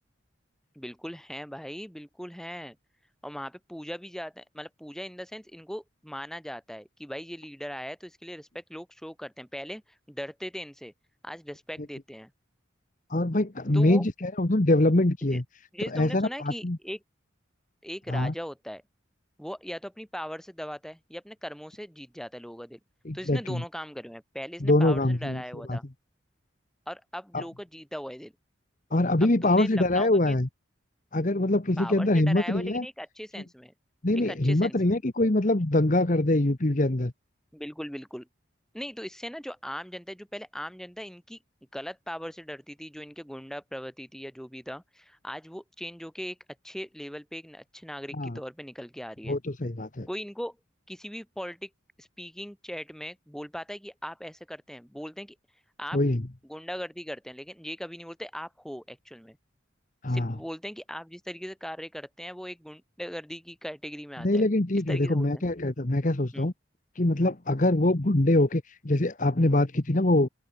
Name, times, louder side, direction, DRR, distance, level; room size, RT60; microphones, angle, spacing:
voice 1, 0.8-2.8 3.2-9.8 10.1-10.9 11.2-12.3 13.7-14.1 15.3-15.4 15.7-17.0 17.8-18.8 19.4-22.8 23.1-25.8 26.9-28.3 29.4-30.4 31.8-33.7 34.1-35.0 37.5-38.3 38.7-41.4 41.7-46.4 46.6-49.4 50.1-50.6 50.9-51.7 52.0-55.4 55.8-56.0 56.5-59.4 60.1-64.5 64.9-65.4 66.3-66.5, equal, 5° left, 7.3 m, -39 dB
voice 2, 13.1-15.4 15.9-16.8 18.1-18.3 23.0-23.6 24.6-25.4 25.7-25.8 27.3-27.4 28.9-30.5 31.1-32.8 34.0-37.1 48.2-48.4 49.3-50.1 55.9-56.2 60.0-60.3 64.2-66.5 67.0-70.3, left 1 dB, 40° left, 1.2 m, -24 dB
open air
head